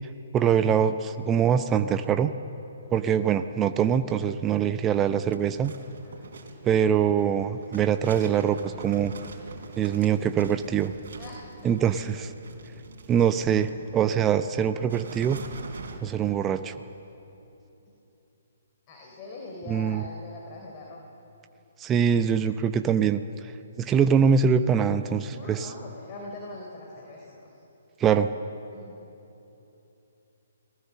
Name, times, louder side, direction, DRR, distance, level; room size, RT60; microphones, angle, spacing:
voice 1, 0.3-2.3 2.9-5.7 6.6-9.1 9.8-10.9 11.6-12.3 13.1-15.4 16.0-16.7 19.7-20.0 21.8-23.2 23.8-25.7 28.0-28.3, right 8 dB, 20° right, 10 dB, 0.7 m, -23 dB
sound 1, 5.1-16.0, right 5 dB, 60° right, 3.5 m, -44 dB
voice 2, 11.2-11.7 18.9-21.0 25.3-27.4 28.7-29.0, left 2 dB, 35° left, -1 dB, 3.8 m, -42 dB
29.5 x 19.5 x 6.9 m, 3.0 s
figure-of-eight pair, 130°, 0 cm